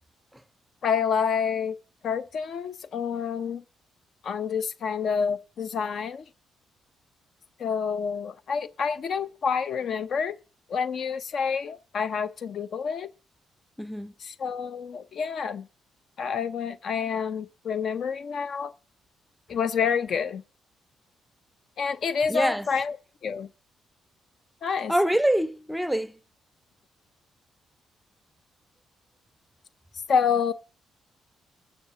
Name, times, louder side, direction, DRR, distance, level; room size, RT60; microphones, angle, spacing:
voice 1, 0.8-1.8 2.0-3.6 4.2-6.2 7.6-10.4 10.7-13.1 14.2-15.7 16.2-18.7 19.5-20.4 21.8-23.0 23.2-23.5 24.6-24.9 30.1-30.5, left 6 dB, 60° left, 0.6 m, -28 dB
voice 2, 13.8-14.1 22.3-22.7 24.9-26.2, right 1 dB, 5° right, 0.7 m, -25 dB
13.0 x 6.6 x 6.9 m
cardioid pair, 90°, 0 cm